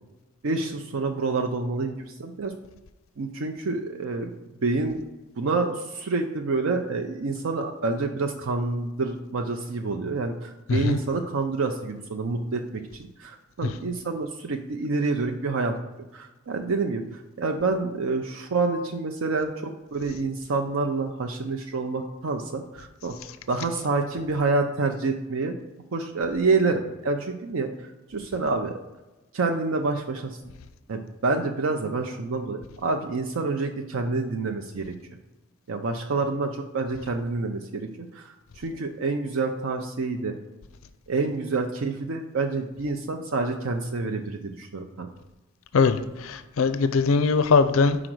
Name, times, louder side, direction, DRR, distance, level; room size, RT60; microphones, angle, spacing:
voice 1, 0.4-2.5 3.2-4.3 4.6-5.0 5.4-15.8 16.1-23.2 23.5-25.6 25.9-27.7 28.1-28.8 29.3-30.4 30.9-34.9 35.7-40.4 41.1-45.1, right 3 dB, 75° right, 4 dB, 0.5 m, -28 dB
voice 2, 46.2-48.0, left 4 dB, 75° left, 11 dB, 0.4 m, -20 dB
5.0 x 4.9 x 6.1 m, 1.1 s
head